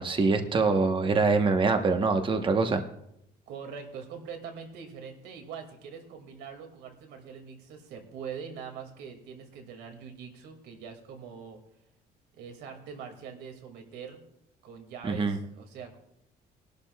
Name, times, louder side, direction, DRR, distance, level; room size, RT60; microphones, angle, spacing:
voice 1, 0.0-2.8 15.0-15.4, right 4 dB, 30° right, 6 dB, 1.1 m, -24 dB
voice 2, 3.5-11.6 12.3-14.2 14.6-16.0, right 6 dB, 85° right, 5 dB, 2.3 m, -43 dB
20.5 x 12.0 x 2.4 m, 0.77 s
cardioid pair, 110°, 17 cm